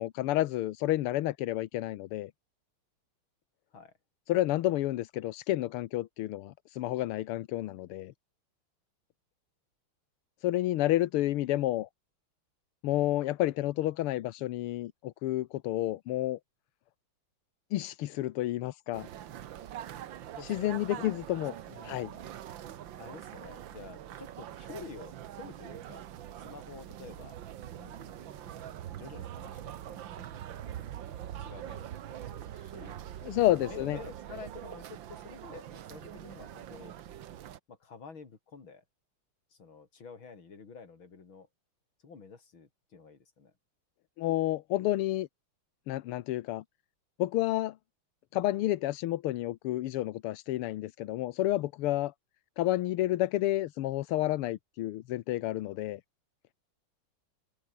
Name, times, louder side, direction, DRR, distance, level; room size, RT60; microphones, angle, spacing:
voice 1, 0.0-2.3 4.3-8.1 10.4-11.9 12.8-16.4 17.7-19.1 20.4-21.5 21.8-22.1 33.2-34.0 44.2-45.3 45.9-46.6 47.2-47.8 48.3-52.1 52.6-56.0, left 15 dB, 90° left, 1.7 m, -30 dB
sound 1, 18.9-37.6, right 11 dB, 65° right, 1.7 m, -44 dB
voice 2, 20.4-21.2 21.7-22.4 23.0-26.1 26.4-27.4 27.8-30.0 30.3-33.0 33.5-36.9 37.7-38.8 39.5-41.5 42.0-43.5, left 5 dB, 65° left, 4.1 m, -50 dB
omnidirectional pair, 2.4 m